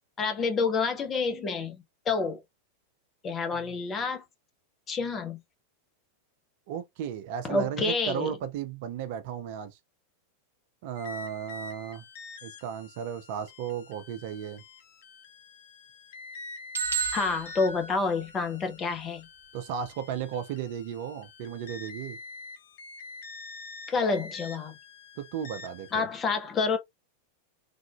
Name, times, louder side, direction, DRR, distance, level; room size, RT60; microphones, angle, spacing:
voice 1, 0.2-2.4 3.2-4.2 4.9-5.4 7.5-8.3 17.1-19.3 23.9-24.7 25.9-26.8, left 4 dB, 25° left, 0.8 m, -28 dB
voice 2, 6.7-9.8 10.8-12.0 12.4-14.6 19.5-22.2 25.2-26.0, right 8 dB, 50° right, 0.5 m, -35 dB
sound 1, 11.0-25.9, left 3 dB, 55° left, 0.6 m, -46 dB
sound 2, 16.7-18.7, right 5 dB, 80° right, 0.8 m, -33 dB
3.4 x 2.5 x 2.3 m
figure-of-eight pair, 90°, 0 cm